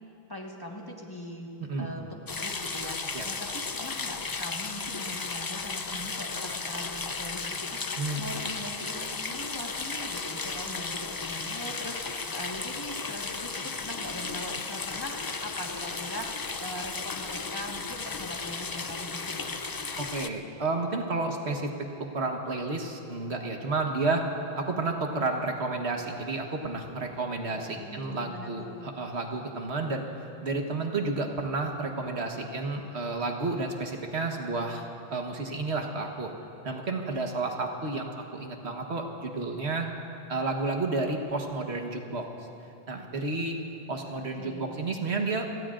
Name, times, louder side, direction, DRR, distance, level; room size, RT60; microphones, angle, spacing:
voice 1, 0.3-1.5 1.8-7.8 8.2-19.5 27.5-28.9 44.4-44.7, equal, 20° left, -1 dB, 1.6 m, -41 dB
sound 1, 2.3-20.3, left 4 dB, 35° left, 0.3 m, -35 dB
voice 2, 8.0-8.3 20.0-21.7 22.1-24.2 24.6-30.1 30.4-36.3 36.6-39.9 40.3-42.3 42.9-43.6 43.9-45.5, right 3 dB, 75° right, 2 dB, 1.6 m, -31 dB
29.0 x 18.5 x 2.5 m, 2.7 s
omnidirectional pair, 1.1 m